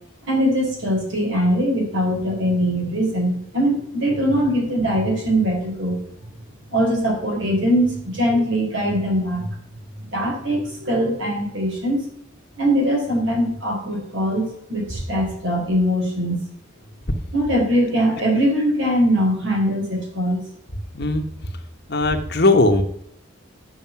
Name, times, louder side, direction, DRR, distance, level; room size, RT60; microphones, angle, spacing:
voice 1, 0.3-6.0 6.7-9.5 10.0-12.0 12.6-16.4 17.3-20.4, equal, 60° right, 0 dB, 4.0 m, -21 dB
voice 2, 21.9-22.8, left 2 dB, 50° left, 5 dB, 1.2 m, -18 dB
9.4 x 6.9 x 5.8 m, 0.73 s
head